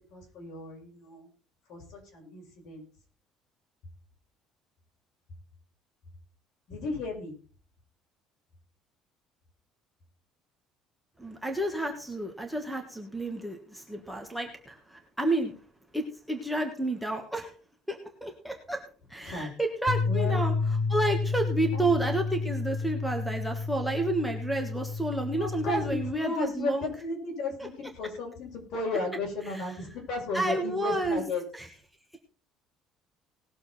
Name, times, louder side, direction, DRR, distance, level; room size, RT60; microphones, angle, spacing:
voice 1, 0.1-1.3 1.7-2.8 6.7-7.4 19.3-19.5 20.1-20.4 21.7-21.9 25.4-26.7 27.0-31.4, left 3 dB, 55° left, 0 dB, 5.5 m, -34 dB
voice 2, 11.2-15.5 15.9-17.5 17.9-18.8 19.1-26.9 27.6-27.7 29.4-29.7 30.3-31.3 31.5-31.7, right 2 dB, ahead, 1 dB, 1.5 m, -31 dB
sound 1, 19.9-26.1, left 4 dB, 90° left, 2.9 m, -30 dB
19.0 x 7.1 x 4.2 m, 0.40 s
cardioid pair, 165°, 0 cm